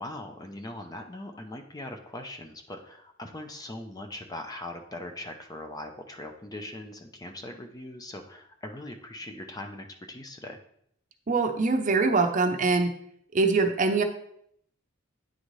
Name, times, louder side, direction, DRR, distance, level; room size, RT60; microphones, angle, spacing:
voice 1, 0.0-10.6, left 1 dB, 20° left, 5 dB, 0.6 m, -40 dB
voice 2, 11.3-12.9 13.3-14.0, right 3 dB, 40° right, 5 dB, 0.7 m, -23 dB
9.7 x 3.9 x 3.1 m, 0.69 s
head